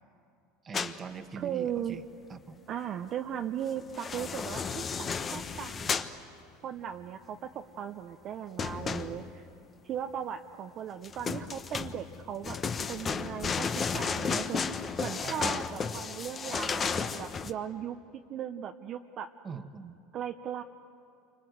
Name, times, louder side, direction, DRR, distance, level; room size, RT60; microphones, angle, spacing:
voice 1, 0.6-2.0 2.3-2.6 15.2-15.6 19.4-20.0, right 6 dB, 25° right, 8 dB, 1.4 m, -42 dB
sound 1, 0.7-1.0 3.8-6.1 8.6-9.5 11.0-17.5, left 5 dB, 25° left, 1.1 m, -33 dB
voice 2, 1.4-2.0 2.7-6.0 6.6-9.5 9.8-12.6 12.9-13.7 13.9-18.0 18.3-19.3 20.1-20.6, right 9 dB, 40° right, 5 dB, 0.8 m, -37 dB
29.0 x 25.5 x 8.0 m, 2.7 s
supercardioid pair, 120°, 0 cm